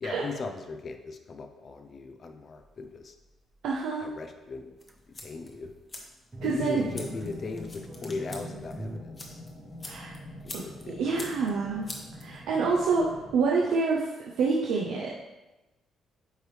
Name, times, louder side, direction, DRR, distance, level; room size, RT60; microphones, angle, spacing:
voice 1, 0.0-3.1 4.0-4.7 5.2-5.7 6.4-9.4 10.4-11.3, left 4 dB, 45° left, 6 dB, 0.6 m, -38 dB
sound 1, 2.6-2.9 3.5-3.6 4.9-5.7 5.9-6.0 6.2-9.0, right 2 dB, 20° right, 0.6 m, -42 dB
voice 2, 3.6-4.1 6.4-6.9 9.8-10.1 10.5-10.6 11.0-11.9 12.2-14.1 14.4-15.1, right 4 dB, 85° right, -3 dB, 0.7 m, -27 dB
sound 2, 4.8-12.8, left 2 dB, 30° left, 1.1 m, -47 dB
sound 3, 6.3-13.4, left 1 dB, 5° left, 1.5 m, -45 dB
9.1 x 3.2 x 3.3 m, 1.1 s
cardioid pair, 90°, 0 cm